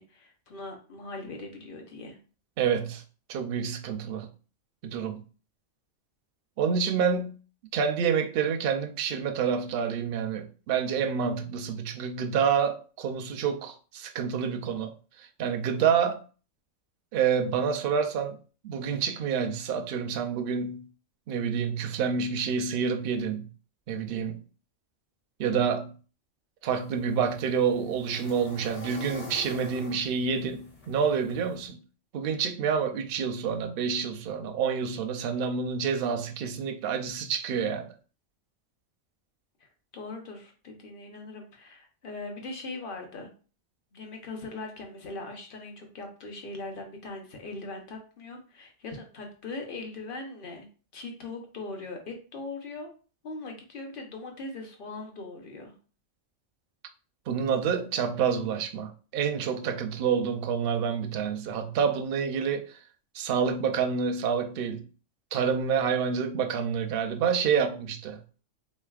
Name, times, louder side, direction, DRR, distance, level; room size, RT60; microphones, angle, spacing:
voice 1, 0.0-2.2 39.6-43.3 43.9-50.7 50.9-52.9 53.2-55.7, left 3 dB, 50° left, 0.9 m, -40 dB
voice 2, 2.6-3.0 3.3-4.3 4.8-5.2 6.6-7.3 7.7-16.2 17.1-18.4 18.6-20.8 21.3-23.5 23.9-24.4 25.4-25.9 26.6-31.8 32.1-37.9 57.3-62.8 63.1-64.8 65.3-68.2, right 6 dB, 60° right, 0.6 m, -28 dB
sound 1, 26.7-31.7, left 3 dB, 65° left, 1.4 m, -46 dB
3.8 x 3.2 x 2.3 m
omnidirectional pair, 1.3 m